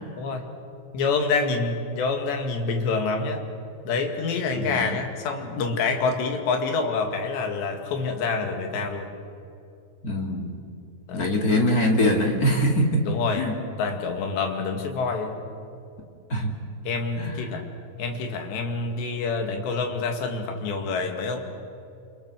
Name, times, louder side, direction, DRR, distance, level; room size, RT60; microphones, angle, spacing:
voice 1, 0.2-0.5 0.9-3.5 3.9-9.1 11.1-11.6 13.0-13.5 13.8-15.4 16.8-17.7 18.0-21.4, left 4 dB, 70° left, 4 dB, 4.2 m, -27 dB
voice 2, 4.5-4.9 10.0-10.6 11.1-13.0 13.4-13.5 16.3-16.5 17.2-17.4, equal, 50° left, 1 dB, 1.1 m, -23 dB
28.0 x 27.5 x 6.5 m, 2.5 s
omnidirectional pair, 5.4 m